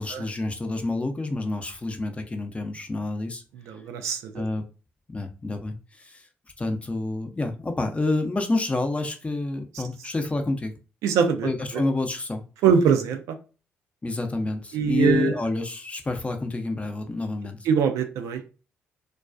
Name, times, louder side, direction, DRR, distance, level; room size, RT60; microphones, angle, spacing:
voice 1, 0.0-3.4 4.3-4.6 5.1-6.2 6.6-10.7 11.4-12.4 14.0-17.6, left 2 dB, 25° left, 0.6 m, -28 dB
voice 2, 3.5-4.5 11.0-11.8 12.6-13.4 14.7-15.4 17.6-18.4, right 6 dB, 75° right, 0.4 m, -23 dB
2.3 x 2.2 x 2.4 m
hypercardioid pair, 50°, 5 cm